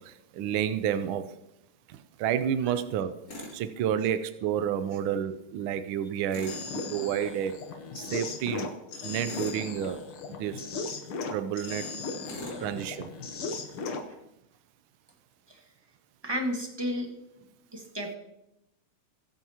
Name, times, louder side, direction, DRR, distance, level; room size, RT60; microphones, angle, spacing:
voice 1, 0.4-1.2 2.2-3.1 3.5-6.5 6.9-7.6 7.9-8.7 9.0-10.0 10.3-10.6 11.3-11.9 12.6-13.1, right 9 dB, 75° right, 10 dB, 1.4 m, -29 dB
Tools, 3.3-3.6 6.3-6.7 9.2-9.7 12.2-12.6, left 1 dB, 60° left, 3.9 m, -41 dB
sound 1, 6.5-14.1, left 4 dB, 75° left, 2.0 m, -37 dB
voice 2, 12.4-12.8 14.1-14.2 15.5-15.6 16.2-17.1 17.7-18.2, equal, 15° right, 1 dB, 1.4 m, -34 dB
21.0 x 8.2 x 2.9 m, 0.84 s
omnidirectional pair, 2.4 m